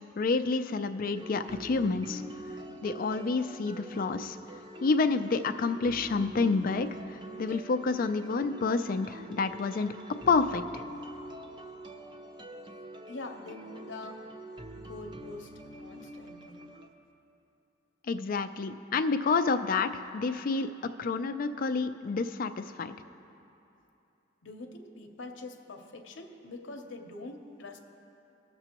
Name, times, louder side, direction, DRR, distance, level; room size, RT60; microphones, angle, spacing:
voice 1, 0.2-2.2 2.8-4.4 4.8-9.9 10.3-10.6 18.1-20.7 21.0-22.9, left 4 dB, 50° left, 10 dB, 0.4 m, -29 dB
sound 1, 1.1-16.9, right 1 dB, 25° right, 0.6 m, -45 dB
voice 2, 13.1-14.3 14.7-16.6 24.4-27.8, left 2 dB, 80° left, 4 dB, 0.7 m, -44 dB
18.5 x 6.8 x 2.9 m, 2.9 s
head